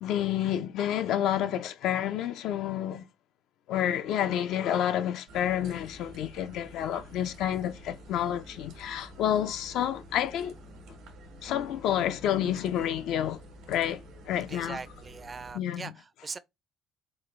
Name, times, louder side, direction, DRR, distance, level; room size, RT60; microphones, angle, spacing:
voice 1, 0.0-3.1 3.7-10.6 11.4-13.4 13.7-14.8 15.5-15.9, left 10 dB, 70° left, 0.4 m, -29 dB
sound 1, 5.3-15.5, equal, 75° right, 1.3 m, -49 dB
voice 2, 14.5-16.4, right 4 dB, 30° right, 0.4 m, -41 dB
4.1 x 2.3 x 3.2 m
cardioid pair, 95°, 0 cm